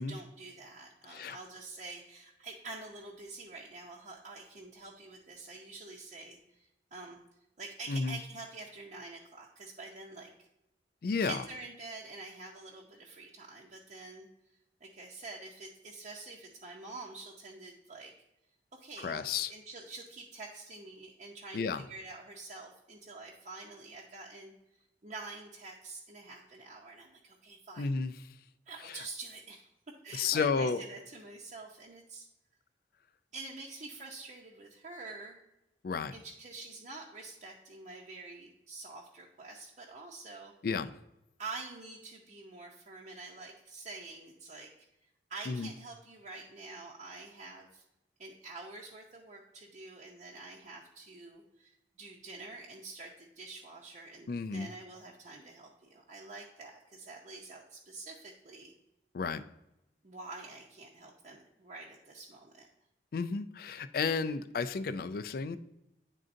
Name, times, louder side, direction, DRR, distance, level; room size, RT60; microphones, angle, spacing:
voice 1, 0.0-7.2 7.6-10.3 11.2-18.1 18.7-24.5 25.0-27.9 28.7-32.3 33.3-35.4 36.1-40.5 41.4-44.7 45.0-47.8 48.2-58.7 60.0-62.7, right 3 dB, 45° right, -3 dB, 0.7 m, -47 dB
voice 2, 7.9-8.2 11.0-11.4 19.0-19.5 21.5-21.8 27.8-28.1 28.8-29.0 30.1-30.8 35.8-36.1 40.6-40.9 45.5-45.7 54.3-54.7 59.1-59.4 63.1-65.6, left 5 dB, 55° left, 12 dB, 0.4 m, -32 dB
10.5 x 3.8 x 2.6 m, 0.89 s
head